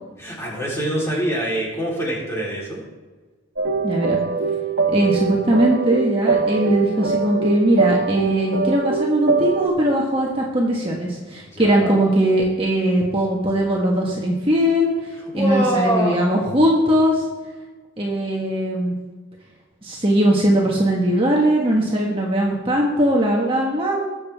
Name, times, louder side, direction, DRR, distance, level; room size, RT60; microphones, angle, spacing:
voice 1, 0.2-2.8 11.5-11.9 15.3-16.2, right 1 dB, 15° left, -5 dB, 3.7 m, -24 dB
sound 1, 3.6-9.7, right 4 dB, 70° right, 1.2 m, -22 dB
voice 2, 3.8-4.2 4.9-14.9 15.3-17.2 18.0-18.9 19.8-24.0, right 1 dB, 25° right, -2 dB, 1.5 m, -20 dB
20.5 x 7.4 x 3.6 m, 1.3 s
head